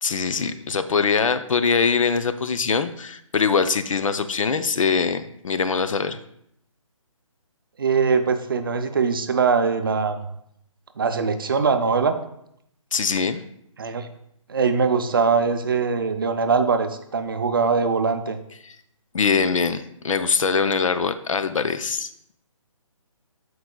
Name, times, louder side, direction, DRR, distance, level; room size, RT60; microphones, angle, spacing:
voice 1, 0.0-6.2 12.9-13.4 18.6-18.8 19.1-22.1, left 5 dB, 70° left, 11 dB, 0.6 m, -23 dB
voice 2, 7.8-10.2 11.0-12.1 13.8-14.1 14.5-18.4, right 5 dB, 40° right, 8 dB, 0.5 m, -22 dB
13.5 x 4.7 x 2.2 m, 0.74 s
hypercardioid pair, 170°, 17 cm